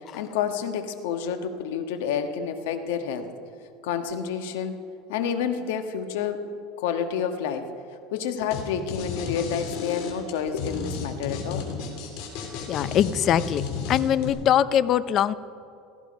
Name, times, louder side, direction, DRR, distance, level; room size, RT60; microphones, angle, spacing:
voice 1, 0.1-3.3 3.8-4.8 5.1-6.4 6.8-7.7 8.1-11.7, left 7 dB, 85° left, 7 dB, 1.4 m, -29 dB
sound 1, 8.5-8.6 8.9-14.3, left 6 dB, 65° left, 3.3 m, -33 dB
voice 2, 12.7-13.6 13.9-15.3, left 10 dB, 35° left, 16 dB, 0.5 m, -22 dB
16.5 x 15.0 x 5.2 m, 2.5 s
cardioid pair, 155°, 0 cm